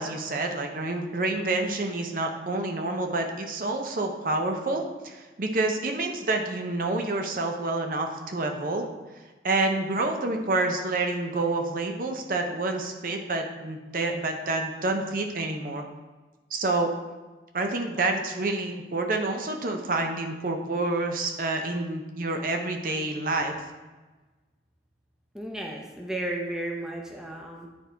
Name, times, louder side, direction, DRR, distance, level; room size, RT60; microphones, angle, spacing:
voice 1, 0.0-8.8 9.4-15.8 16.5-16.9 17.5-23.5, right 2 dB, 50° right, 4 dB, 0.6 m, -28 dB
voice 2, 25.3-27.7, right 1 dB, 5° right, 0 dB, 0.7 m, -33 dB
9.7 x 4.5 x 3.4 m, 1.2 s
head